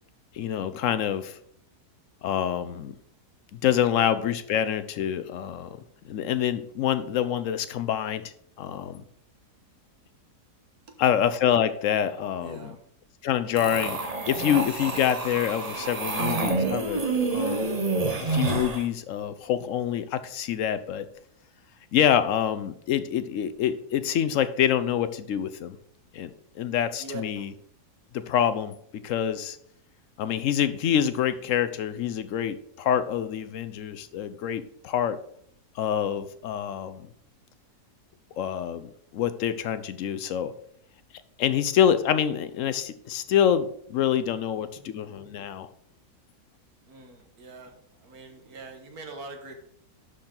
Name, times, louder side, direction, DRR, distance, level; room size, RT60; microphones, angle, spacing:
voice 1, 0.3-1.4 2.2-2.9 3.5-5.8 6.0-8.3 8.6-9.0 11.0-12.7 13.2-14.0 14.3-17.8 18.2-21.1 21.9-25.8 26.1-27.5 28.1-29.6 30.2-35.2 35.8-37.1 38.4-40.5 41.4-45.7, left 9 dB, 65° left, 12 dB, 0.8 m, -26 dB
voice 2, 12.4-12.8 27.0-27.5 45.2-45.3 46.9-47.7 48.0-49.5, right 3 dB, 65° right, 4 dB, 1.8 m, -42 dB
sound 1, 13.6-18.8, right 3 dB, 30° right, 0.8 m, -28 dB
11.5 x 4.4 x 3.8 m, 0.65 s
omnidirectional pair, 1.7 m